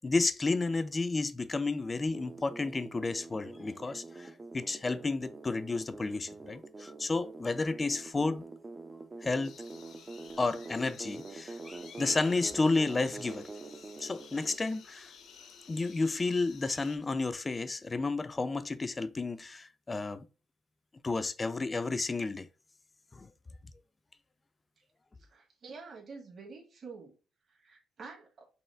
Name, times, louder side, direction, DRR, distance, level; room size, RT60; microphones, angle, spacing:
voice 1, 0.0-8.4 9.2-9.6 10.4-13.5 14.0-15.1 15.7-20.2 21.0-22.5 23.1-23.3, left 3 dB, 25° left, 0.4 m, -32 dB
sound 1, 2.1-14.6, right 3 dB, 25° right, 0.5 m, -46 dB
sound 2, 9.4-17.0, left 6 dB, 75° left, 0.6 m, -53 dB
voice 2, 25.3-27.1 27.5-28.4, right 4 dB, 45° right, 1.7 m, -48 dB
5.4 x 2.0 x 3.3 m
cardioid pair, 90°, 0 cm